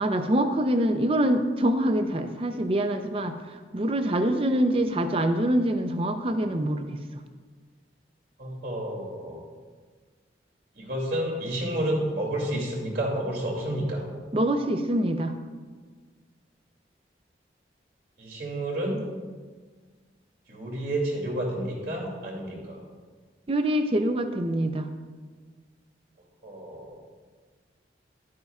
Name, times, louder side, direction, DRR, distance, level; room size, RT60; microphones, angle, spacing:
voice 1, 0.0-3.4 3.7-6.9 14.3-15.3 23.5-24.9, right 1 dB, 30° right, 8 dB, 0.5 m, -25 dB
voice 2, 8.4-9.4 10.8-14.1 18.2-19.0 20.5-22.8 26.4-27.0, right 1 dB, 60° right, -3 dB, 2.7 m, -30 dB
12.0 x 9.4 x 2.4 m, 1.5 s
head